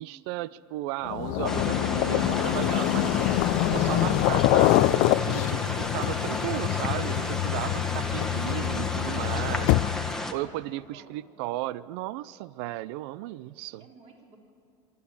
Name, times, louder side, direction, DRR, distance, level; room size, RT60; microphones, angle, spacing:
voice 1, 0.0-3.4 3.7-9.7 10.3-13.8, right 16 dB, 80° right, 19 dB, 0.5 m, -35 dB
sound 1, 1.0-10.2, left 18 dB, 70° left, 0.5 m, -25 dB
sound 2, 1.4-10.3, left 1 dB, 5° left, 1.5 m, -32 dB
voice 2, 10.2-11.2 13.8-14.4, right 3 dB, 50° right, 0 dB, 4.2 m, -53 dB
25.5 x 12.0 x 8.8 m, 2.3 s
supercardioid pair, 120°, 13 cm